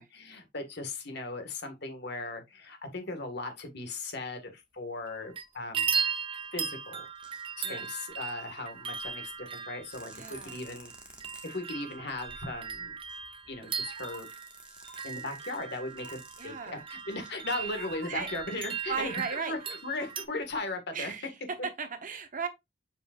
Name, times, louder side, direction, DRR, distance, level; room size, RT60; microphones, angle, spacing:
voice 1, 0.0-5.9 6.5-7.1 7.6-10.9 11.2-12.9 13.5-14.3 15.0-21.1, left 2 dB, 55° left, 1.7 m, -38 dB
sound 1, 5.1-5.4 5.7-20.2, right 6 dB, 25° right, 0.6 m, -37 dB
sound 2, 5.4-5.5 6.4-6.7 7.1-7.5 7.8-9.4 9.8-19.4 19.8-19.9 20.1-20.6, right 1 dB, 5° right, 1.6 m, -54 dB
voice 2, 10.1-10.6 16.4-16.9 17.5-17.7 18.1-18.3 18.9-19.5 20.9-22.5, right 5 dB, 45° right, 1.0 m, -36 dB
sound 3, 13.8-14.2 14.8-15.1 16.0-16.4 17.3-17.4 17.7-18.1 18.9-20.1 20.5-20.6, right 2 dB, 75° right, 1.2 m, -49 dB
7.3 x 5.3 x 2.5 m
head